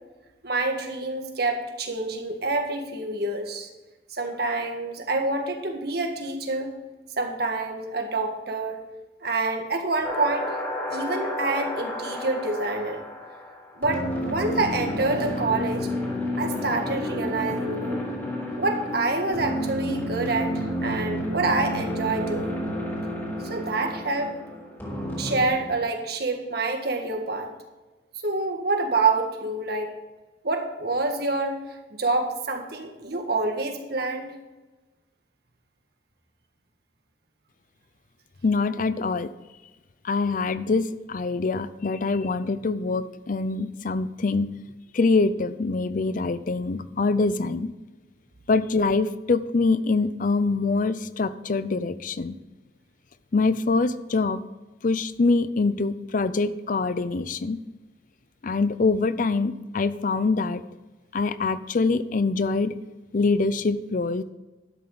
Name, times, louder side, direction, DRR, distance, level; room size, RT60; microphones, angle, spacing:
voice 1, 0.4-3.7 4.1-6.7 7.2-8.8 9.2-10.5 10.9-13.0 13.8-15.9 16.4-18.0 18.6-20.5 20.8-22.6 23.4-24.3 25.2-27.5 28.2-29.9 30.4-31.6 31.9-34.3, right 3 dB, 65° right, 4 dB, 1.7 m, -27 dB
sound 1, 10.0-25.5, equal, 15° left, 3.6 m, -30 dB
voice 2, 38.4-39.3 40.0-44.5 44.9-47.7 48.5-52.4 53.3-54.4 54.8-57.6 58.4-60.6 61.1-62.7 63.1-64.2, left 3 dB, 50° left, 15 dB, 0.5 m, -24 dB
12.0 x 10.5 x 4.0 m, 1.2 s
head